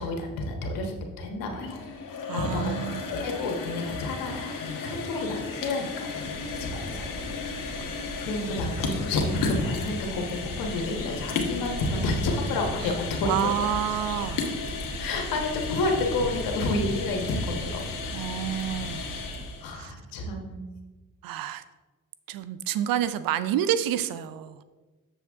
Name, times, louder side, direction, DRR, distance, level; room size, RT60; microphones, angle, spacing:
voice 1, 0.0-1.8 2.3-2.7 3.1-13.3 14.9-17.8 18.3-18.7 19.6-20.6, left 2 dB, 90° left, 2 dB, 1.4 m, -30 dB
sound 1, 1.5-19.7, left 4 dB, 70° left, 1.3 m, -34 dB
voice 2, 2.3-3.0 7.9-8.0 12.8-12.9 13.2-14.5 18.1-19.0 19.7-19.9 21.2-21.6 22.3-24.6, right 11 dB, 85° right, 13 dB, 0.6 m, -29 dB
sound 2, 6.2-19.5, right 2 dB, 25° right, 1.0 m, -41 dB
7.1 x 7.0 x 3.6 m, 1.2 s
cardioid pair, 75°, 33 cm